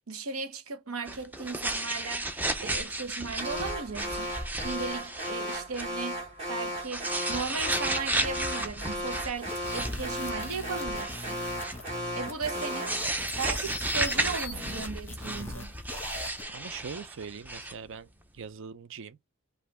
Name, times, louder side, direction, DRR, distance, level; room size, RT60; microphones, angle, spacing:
voice 1, 0.1-4.4 4.6-6.2 6.5-11.4 12.2-13.0 13.4-15.7, right 5 dB, 80° right, 1.0 m, -36 dB
sound 1, 1.1-5.9 6.2-6.3 6.7-11.9 12.5-17.7, right 1 dB, 10° right, 0.5 m, -34 dB
Alarm, 3.4-13.0, equal, 30° right, 2.4 m, -36 dB
sound 2, 9.3-16.4, left 2 dB, 10° left, 1.4 m, -41 dB
voice 2, 16.5-18.1 18.3-19.2, right 6 dB, 60° right, 0.5 m, -41 dB
4.9 x 2.6 x 3.3 m
head